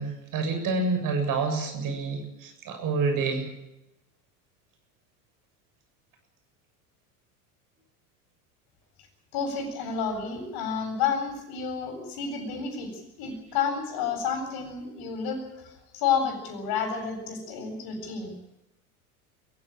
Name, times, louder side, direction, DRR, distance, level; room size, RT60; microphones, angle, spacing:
voice 1, 0.0-3.5, right 4 dB, 45° right, 6 dB, 7.6 m, -28 dB
voice 2, 9.3-18.3, left 6 dB, 55° left, 6 dB, 7.7 m, -30 dB
23.0 x 16.0 x 9.0 m, 0.90 s
hypercardioid pair, 80°, 44 cm